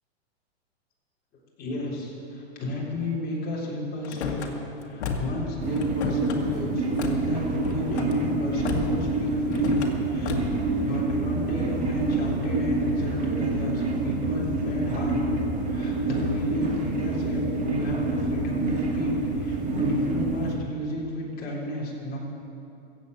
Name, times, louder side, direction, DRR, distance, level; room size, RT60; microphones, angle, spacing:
voice 1, 1.6-4.6 4.9-10.4 10.8-15.2 15.7-22.2, left 2 dB, 30° left, -4 dB, 3.8 m, -33 dB
Car / Slam, 4.0-4.5 5.0-5.4 5.8-6.4 7.0-7.2 7.6-8.1 8.7-9.1 9.5-9.9 10.3-10.6, left 5 dB, 75° left, 1.8 m, -32 dB
sound 1, 5.6-20.5, right 2 dB, 20° right, 2.0 m, -27 dB
15.0 x 8.0 x 8.0 m, 2.8 s
hypercardioid pair, 135°, 34 cm